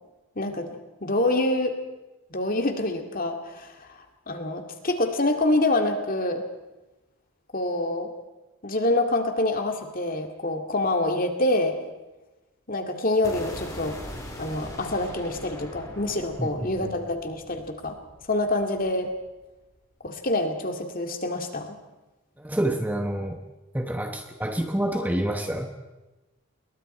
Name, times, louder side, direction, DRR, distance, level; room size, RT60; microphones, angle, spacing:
voice 1, 0.4-1.8 2.3-4.0 4.3-6.4 7.5-8.1 8.6-11.8 12.7-14.0 14.4-18.0 18.3-19.1 20.0-21.8, left 2 dB, 40° left, 4 dB, 2.3 m, -26 dB
sound 1, 13.2-19.3, left 1 dB, 15° left, 3.8 m, -41 dB
voice 2, 16.4-16.9 22.4-23.4 23.7-25.9, right 1 dB, 5° right, 5 dB, 1.0 m, -28 dB
28.5 x 22.0 x 4.4 m, 1.1 s
head